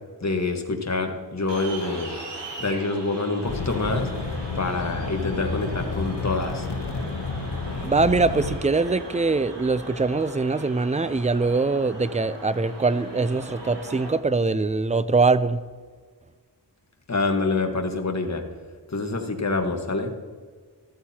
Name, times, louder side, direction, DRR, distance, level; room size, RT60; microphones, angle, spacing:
voice 1, 0.2-2.1 2.6-4.1 4.5-6.7 17.1-18.4 18.9-20.1, left 3 dB, 40° left, 1.4 m, -26 dB
sound 1, 1.5-14.1, right 2 dB, 90° right, 2.1 m, -39 dB
sound 2, 3.4-8.6, left 4 dB, 75° left, 1.1 m, -30 dB
voice 2, 7.8-15.6, right 3 dB, 20° right, 0.4 m, -23 dB
14.0 x 12.5 x 2.9 m
wide cardioid pair, 75°, 42 cm